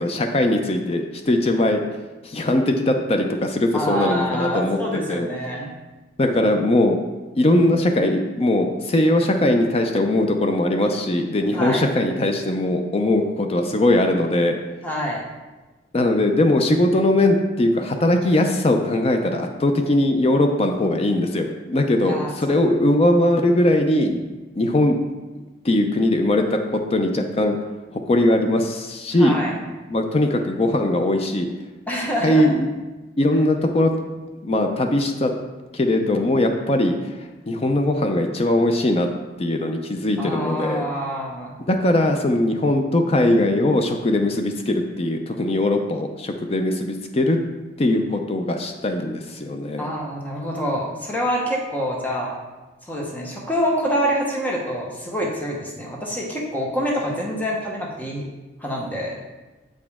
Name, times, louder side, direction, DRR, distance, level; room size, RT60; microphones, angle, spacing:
voice 1, 0.0-1.8 2.2-5.3 6.2-7.0 7.4-14.6 15.9-24.2 24.6-25.0 25.6-27.6 27.9-29.4 29.9-31.5 32.2-32.7 33.2-33.9 34.4-35.3 35.7-37.2 37.5-39.1 39.4-40.8 41.7-47.4 47.8-49.9, left 1 dB, 35° left, 4 dB, 0.5 m, -20 dB
voice 2, 3.7-5.7 11.5-11.8 14.8-15.2 22.1-22.6 29.2-29.5 31.9-32.5 40.2-41.6 49.8-52.3 52.9-58.2 58.6-59.2, equal, 10° left, -3 dB, 1.0 m, -26 dB
7.7 x 5.0 x 3.5 m, 1.2 s
head